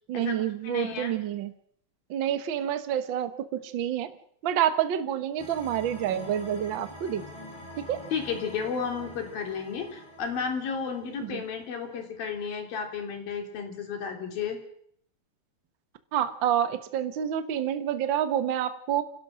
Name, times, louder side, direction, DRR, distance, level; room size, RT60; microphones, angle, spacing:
voice 1, 0.1-1.5 2.1-4.1 4.4-7.2 7.8-8.0 11.2-11.4 16.1-19.0, right 10 dB, 65° right, 10 dB, 1.2 m, -28 dB
voice 2, 0.6-1.1 8.1-14.6, left 6 dB, 80° left, 4 dB, 5.0 m, -33 dB
sound 1, 5.4-12.5, left 1 dB, 5° left, 3.7 m, -46 dB
27.5 x 17.0 x 6.3 m, 0.65 s
omnidirectional pair, 4.1 m